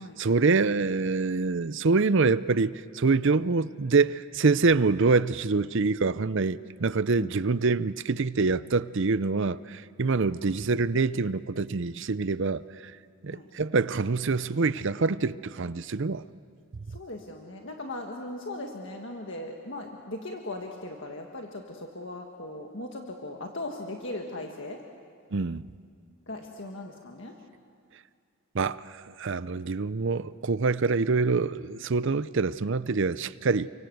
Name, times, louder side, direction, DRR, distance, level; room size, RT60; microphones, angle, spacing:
voice 1, 0.0-12.9 13.2-16.2 25.3-25.6 28.5-33.7, right 4 dB, 55° right, 16 dB, 0.6 m, -25 dB
voice 2, 16.9-24.8 26.3-27.3, left 2 dB, 55° left, 2 dB, 1.7 m, -38 dB
29.5 x 25.0 x 8.0 m, 2.3 s
head